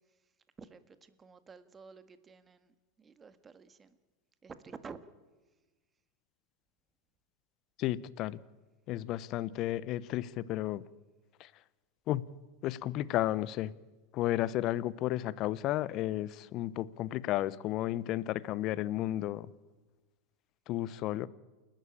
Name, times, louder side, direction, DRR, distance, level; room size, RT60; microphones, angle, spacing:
voice 1, 0.6-4.0 4.4-5.0, right 5 dB, 20° right, 1.7 m, -51 dB
voice 2, 7.8-8.4 8.9-10.8 11.4-11.5 12.1-12.2 12.6-13.7 14.1-19.5 20.7-21.3, left 14 dB, 45° left, 0.9 m, -33 dB
28.5 x 12.0 x 8.6 m
hypercardioid pair, 95°, 0 cm